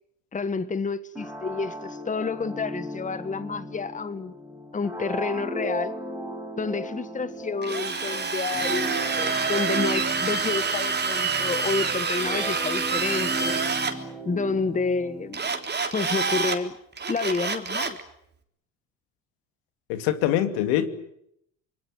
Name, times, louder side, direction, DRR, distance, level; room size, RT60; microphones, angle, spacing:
voice 1, 0.3-4.3 4.7-6.0 6.6-13.6 13.9-15.4 15.9-16.8 17.1-18.0, left 4 dB, 20° left, 1.4 m, -29 dB
sound 1, 1.1-15.7, right 1 dB, 5° right, 5.6 m, -36 dB
Drill, 7.6-13.9 15.3-16.6 17.0-18.0, right 5 dB, 25° right, 3.6 m, -27 dB
voice 2, 19.9-20.9, left 12 dB, 75° left, 2.7 m, -23 dB
26.0 x 22.0 x 9.2 m
hypercardioid pair, 75°, 37 cm